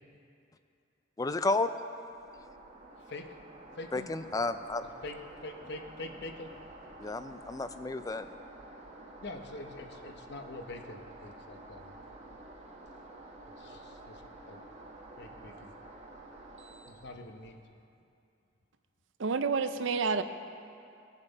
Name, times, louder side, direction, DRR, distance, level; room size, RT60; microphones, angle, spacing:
voice 1, 1.2-1.7 3.9-4.8 7.0-8.3, left 2 dB, 20° left, 11 dB, 0.3 m, -31 dB
sound 1, 2.1-17.6, right 2 dB, 35° right, 1.1 m, -50 dB
voice 2, 3.1-3.4 3.8-4.1 5.0-6.5 9.2-11.9 13.6-14.6 15.2-15.7 16.9-17.6, left 2 dB, 55° left, 5 dB, 0.8 m, -44 dB
voice 3, 19.2-20.2, right 5 dB, 65° right, 10 dB, 0.5 m, -29 dB
20.5 x 7.2 x 4.0 m, 2.6 s
head